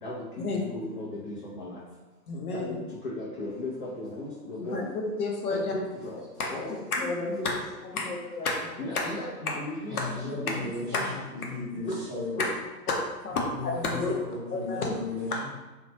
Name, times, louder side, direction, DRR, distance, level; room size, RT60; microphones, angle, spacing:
voice 1, 0.5-1.7 2.5-2.7 3.2-4.8 5.5-6.2 6.5-6.7 7.0-7.4 7.9-8.0 8.8-11.1 11.9-12.0 12.4-12.5 14.0-14.2, left 1 dB, 35° left, -6 dB, 0.5 m, -36 dB
voice 2, 2.3-2.7 4.6-5.7 6.4-7.5 7.8-9.1 10.0-10.1 10.5-10.6 10.8-11.0 11.4-11.5 12.4-12.5 12.9-14.2 14.5-14.9 15.3-15.5, left 3 dB, 65° left, 0 dB, 0.7 m, -31 dB
voice 3, 9.9-11.1 11.3-12.4 13.6-14.0 14.3-15.5, left 3 dB, 10° right, -10 dB, 0.7 m, -35 dB
2.8 x 2.2 x 2.7 m, 1.2 s
figure-of-eight pair, 130°, 48 cm